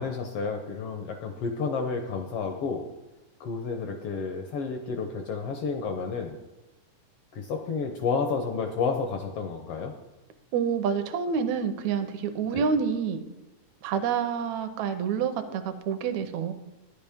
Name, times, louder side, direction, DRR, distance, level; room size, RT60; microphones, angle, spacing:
voice 1, 0.0-2.8 3.4-6.4 7.3-9.9 12.5-12.6, left 5 dB, 75° left, 4 dB, 1.3 m, -31 dB
voice 2, 10.5-13.2 13.8-16.5, right 6 dB, 75° right, 8 dB, 2.0 m, -28 dB
12.0 x 10.0 x 3.5 m, 1.0 s
omnidirectional pair, 3.5 m